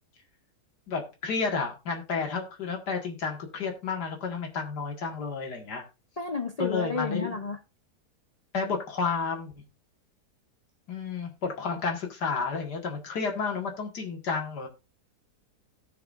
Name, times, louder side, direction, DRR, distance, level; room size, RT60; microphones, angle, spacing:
voice 1, 0.9-5.8 6.6-7.3 8.5-9.5 10.9-14.7, left 5 dB, 80° left, 2.4 m, -31 dB
voice 2, 6.2-7.6, left 4 dB, 55° left, 0.4 m, -31 dB
17.5 x 5.9 x 2.5 m
omnidirectional pair, 1.7 m